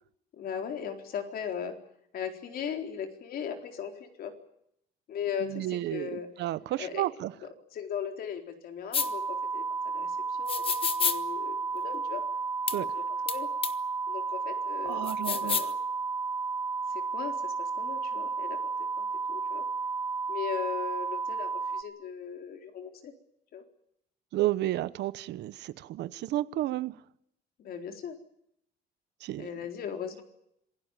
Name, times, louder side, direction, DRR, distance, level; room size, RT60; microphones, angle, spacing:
voice 1, 0.3-1.7 2.1-4.3 5.1-6.3 6.8-7.0 7.7-9.6 9.9-12.2 12.7-13.5 14.1-15.7 16.9-19.6 20.3-23.1 23.5-23.6 27.6-28.2 29.4-30.2, left 8 dB, 55° left, 4.1 m, -38 dB
voice 2, 5.4-7.3 12.7-12.9 14.8-15.6 24.3-27.0 29.2-29.5, right 15 dB, 75° right, 1.0 m, -32 dB
sound 1, 8.9-9.1 10.5-11.2 12.7-12.8 13.3-13.4 13.6-13.7 15.1-15.7, left 6 dB, 30° left, 1.4 m, -28 dB
sound 2, 9.0-21.8, right 4 dB, 15° right, 1.9 m, -32 dB
26.5 x 17.5 x 9.2 m
cardioid pair, 145°, 18 cm